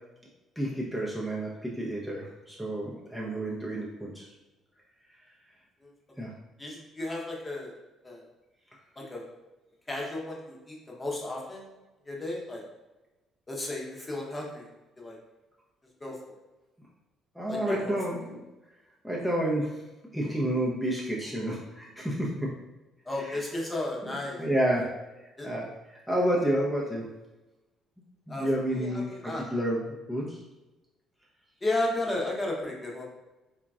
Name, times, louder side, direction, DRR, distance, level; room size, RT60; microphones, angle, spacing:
voice 1, 0.6-4.3 6.2-6.3 17.3-18.4 19.0-19.8 20.1-22.5 23.2-23.4 24.0-24.9 25.4-27.1 28.3-30.4, right 1 dB, 5° right, -5 dB, 0.6 m, -30 dB
voice 2, 6.6-7.7 8.0-8.2 9.0-9.3 9.9-11.7 12.1-12.6 13.5-14.7 15.0-15.2 16.0-16.4 17.5-17.9 23.1-24.4 25.4-25.5 28.3-28.5 28.7-29.4 31.6-33.0, left 2 dB, 25° left, -2 dB, 0.8 m, -33 dB
3.7 x 2.3 x 2.3 m, 1.1 s
hypercardioid pair, 50°, 0 cm